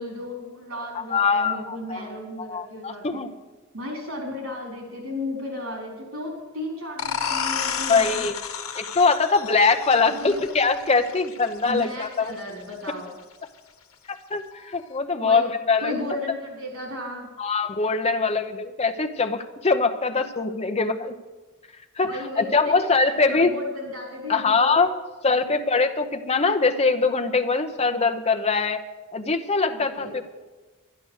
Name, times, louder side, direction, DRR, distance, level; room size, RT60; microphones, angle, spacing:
voice 1, 0.0-3.2 3.7-8.2 10.2-10.4 11.6-13.1 15.2-15.4 15.8-17.3 22.0-22.8 23.3-24.8 29.7-30.2, left 1 dB, 85° right, 0 dB, 4.4 m, -34 dB
voice 2, 1.1-3.3 7.9-8.3 8.7-12.3 14.1-16.0 17.4-21.1 22.0-23.5 24.3-24.9 25.2-28.8 29.1-30.2, left 4 dB, 30° left, 7 dB, 0.8 m, -23 dB
sound 1, 7.0-12.4, left 7 dB, 85° left, 1.1 m, -31 dB
11.5 x 11.0 x 6.4 m, 1.2 s
head